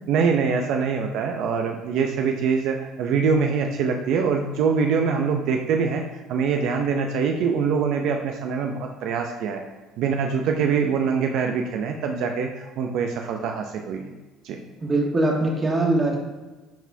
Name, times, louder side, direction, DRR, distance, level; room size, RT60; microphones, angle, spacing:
voice 1, 0.1-9.6 10.0-14.1 14.4-14.6, right 5 dB, 70° right, 3 dB, 0.5 m, -24 dB
voice 2, 14.8-16.2, right 2 dB, 20° right, -1 dB, 1.5 m, -22 dB
10.5 x 4.0 x 2.7 m, 1.2 s
cardioid pair, 115°, 0 cm